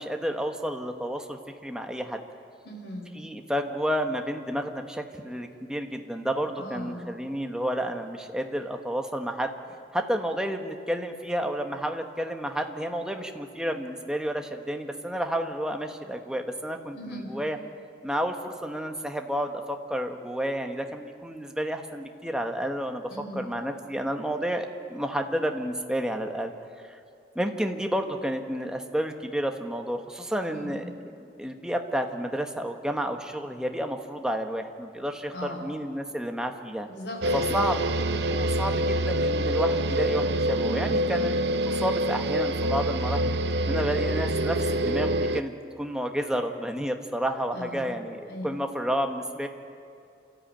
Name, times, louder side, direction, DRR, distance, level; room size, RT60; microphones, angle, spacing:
voice 1, 0.0-2.2 3.1-9.5 9.9-17.6 18.0-23.0 23.3-26.5 26.8-27.0 27.3-36.9 37.3-37.8 38.3-43.3 43.7-49.5, equal, 5° right, 4 dB, 1.2 m, -31 dB
voice 2, 2.6-3.1 6.6-7.0 16.9-17.3 23.1-23.4 30.5-30.9 35.3-35.7 36.9-37.6 38.1-38.3 47.5-47.9 48.3-48.5, left 1 dB, 90° left, 1 dB, 5.0 m, -38 dB
sound 1, 37.2-45.4, right 1 dB, 70° right, 0.7 m, -26 dB
28.5 x 13.0 x 9.0 m, 2.5 s
head